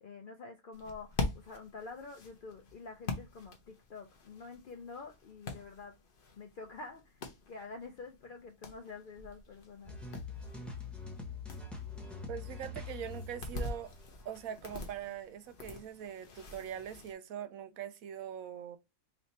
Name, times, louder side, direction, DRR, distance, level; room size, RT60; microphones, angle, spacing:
voice 1, 0.0-5.9 6.4-7.2 7.5-10.0, left 4 dB, 80° left, 0.4 m, -47 dB
sound 1, 0.7-17.1, left 3 dB, 40° left, 0.9 m, -45 dB
sound 2, 9.8-14.8, left 3 dB, ahead, 0.7 m, -44 dB
voice 2, 12.3-13.9 14.2-18.8, right 9 dB, 70° right, 1.0 m, -42 dB
3.4 x 2.7 x 4.1 m
omnidirectional pair, 1.6 m